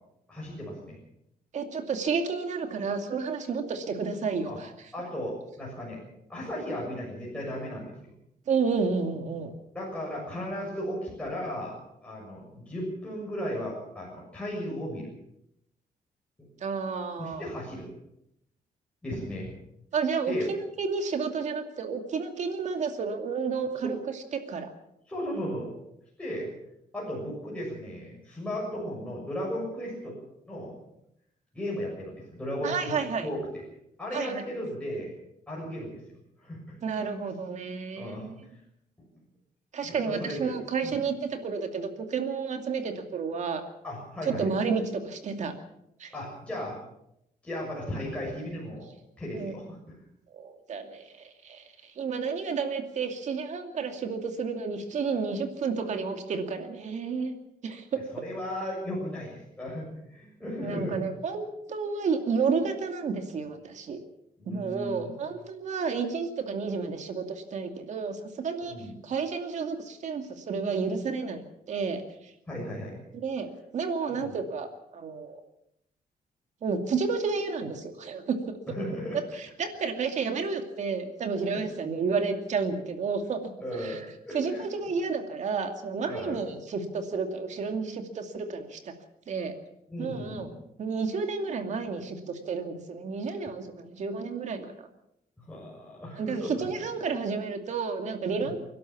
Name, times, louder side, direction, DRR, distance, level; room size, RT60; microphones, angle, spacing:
voice 1, 0.3-1.0 4.4-4.6 4.9-6.0 6.3-7.9 9.7-15.1 17.2-17.9 19.0-19.5 20.3-20.4 23.8-23.9 25.1-25.7 26.2-26.5 26.9-30.1 30.4-30.8 31.5-33.4 34.0-35.1 35.5-35.9 36.4-36.6 37.0-37.1 37.9-38.2 39.8-40.5 40.8-41.0 43.8-44.5 46.1-46.8 47.4-48.9 49.2-49.9 58.1-61.0 64.4-65.1 68.6-68.9 72.5-73.0 74.1-74.3 78.7-79.2 81.5-81.6 83.6-84.7 86.1-86.4 89.9-90.5 95.4-96.6 98.4-98.5, equal, 10° left, -5 dB, 6.9 m, -35 dB
voice 2, 1.5-4.7 8.5-9.5 16.6-17.4 19.9-24.7 32.6-33.3 34.1-34.4 36.8-38.3 39.7-43.6 44.2-45.5 46.0-46.1 49.3-49.5 50.3-57.3 57.6-58.0 60.6-64.0 64.5-72.3 73.1-75.4 76.6-78.6 79.4-83.5 83.8-84.1 84.3-88.9 89.3-89.5 90.0-90.5 90.8-94.9 96.2-98.6, right 5 dB, 50° right, 6 dB, 2.5 m, -31 dB
30.0 x 12.0 x 7.3 m, 0.80 s
wide cardioid pair, 180°, 15 cm